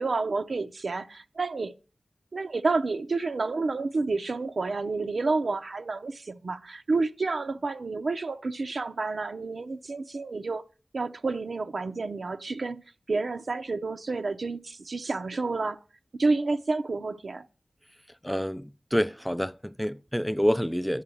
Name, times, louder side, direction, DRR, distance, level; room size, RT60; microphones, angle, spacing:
voice 1, 0.0-1.7 2.3-10.6 10.9-12.8 13.1-15.8 16.2-17.5, right 3 dB, 75° right, 0.7 m, -29 dB
voice 2, 18.2-21.0, equal, 5° left, 0.5 m, -27 dB
11.0 x 5.6 x 8.4 m
wide cardioid pair, 65°, 0 cm